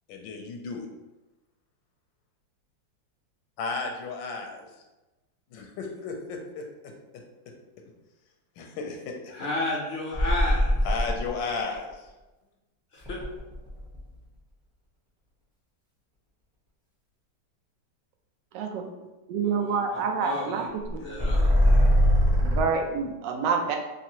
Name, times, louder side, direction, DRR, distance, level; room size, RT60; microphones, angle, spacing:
voice 1, 0.1-0.9 3.6-4.7 5.5-6.6 8.6-9.1 10.8-11.9, left 4 dB, 90° left, 3 dB, 1.4 m, -33 dB
voice 2, 9.3-11.0 12.9-13.2 19.4-20.7 21.0-22.0, left 2 dB, 65° left, -3 dB, 0.6 m, -33 dB
sound 1, 10.1-11.4 13.0-14.0 20.9-22.6, equal, 5° right, 0.6 m, -21 dB
voice 3, 18.5-18.9 19.3-20.6 21.1-21.3 22.4-23.8, right 5 dB, 75° right, 3 dB, 1.2 m, -27 dB
3.7 x 3.2 x 2.9 m, 1.1 s
omnidirectional pair, 2.0 m